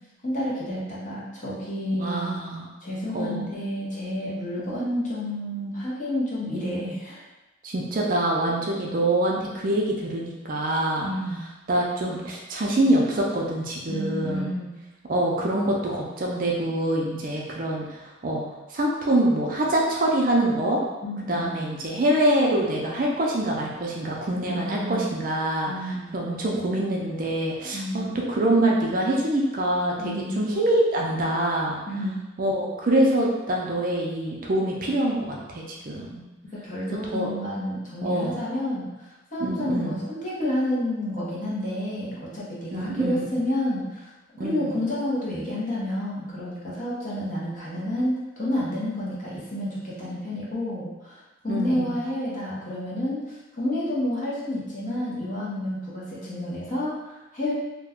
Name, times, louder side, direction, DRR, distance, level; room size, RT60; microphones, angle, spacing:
voice 1, 0.2-2.3 2.8-7.2 11.0-11.4 13.9-14.7 21.0-21.6 24.5-25.0 25.7-26.1 27.7-28.2 30.0-30.5 31.9-32.1 36.5-44.1 44.4-57.5, left 1 dB, 40° left, -7 dB, 0.8 m, -30 dB
voice 2, 2.0-2.7 3.1-3.4 7.6-11.1 11.7-14.5 15.1-18.4 18.7-20.8 21.3-25.7 26.1-31.8 32.4-36.2 37.1-37.3 38.0-38.4 39.4-40.0 42.7-43.2 44.4-44.8 51.5-51.9, right 1 dB, 45° right, -2 dB, 0.4 m, -25 dB
2.4 x 2.2 x 3.5 m, 1.1 s
head